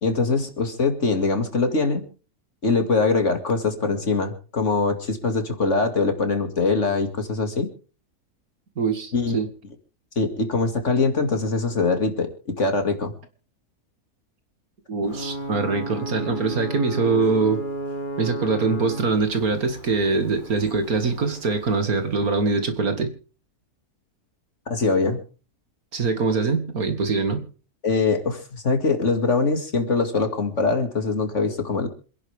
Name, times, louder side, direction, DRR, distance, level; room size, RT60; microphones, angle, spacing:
voice 1, 0.0-2.0 2.6-7.7 9.1-9.4 10.2-12.3 12.6-13.1 24.7-25.2 27.8-31.9, left 3 dB, 50° left, 6 dB, 2.6 m, -23 dB
voice 2, 8.8-9.5 14.9-17.6 18.2-23.1 25.9-27.4, right 4 dB, 65° right, 7 dB, 2.6 m, -23 dB
Ocean / Boat Water vehicle / Alarm, 15.0-22.6, right 1 dB, 35° left, 1.8 m, -34 dB
27.0 x 10.5 x 3.6 m, 0.38 s
omnidirectional pair, 1.6 m